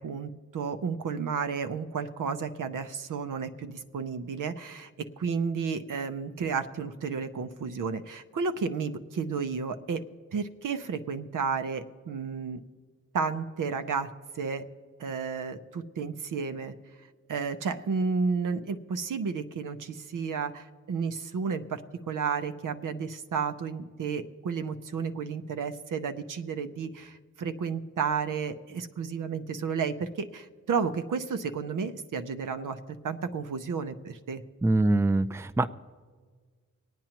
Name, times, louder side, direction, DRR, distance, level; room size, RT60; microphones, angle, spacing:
voice 1, 0.0-4.9 5.2-10.0 10.3-12.6 13.1-14.1 14.3-14.6 15.0-16.7 17.3-21.8 22.1-32.8 33.0-34.4, right 5 dB, 80° right, 9 dB, 0.7 m, -32 dB
voice 2, 34.6-35.7, right 2 dB, 10° right, 12 dB, 0.4 m, -24 dB
26.0 x 9.0 x 2.9 m, 1.5 s
cardioid pair, 55°, 31 cm